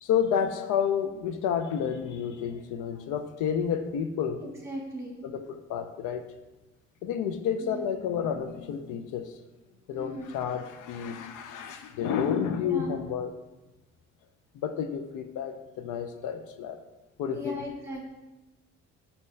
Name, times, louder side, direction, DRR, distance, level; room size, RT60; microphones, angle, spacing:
voice 1, 0.0-4.4 5.2-5.4 5.7-6.2 7.0-9.3 9.9-13.3 14.5-16.8 17.2-17.6, left 8 dB, 85° left, 8 dB, 0.5 m, -30 dB
voice 2, 4.4-5.3 7.6-7.9 9.9-10.3 12.6-13.1 17.3-18.0, equal, 10° right, -1 dB, 1.2 m, -38 dB
5.4 x 2.8 x 3.2 m, 1.1 s
cardioid pair, 90°, 30 cm